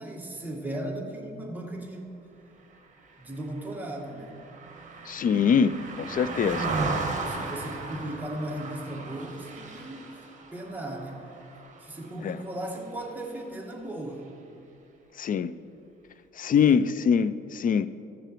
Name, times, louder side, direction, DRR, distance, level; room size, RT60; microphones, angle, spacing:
voice 1, 0.0-2.1 3.2-4.4 7.1-11.2 11.8-14.2 16.5-16.8, right 1 dB, 10° right, -1 dB, 1.9 m, -37 dB
Car passing by, 3.1-12.6 13.0-13.2, right 3 dB, 40° right, 1.6 m, -36 dB
voice 2, 5.1-6.7 12.2-12.4 15.2-15.5 16.4-17.9, left 7 dB, 45° left, 15 dB, 0.4 m, -24 dB
15.0 x 6.9 x 4.5 m, 2.6 s
cardioid pair, 90°, 20 cm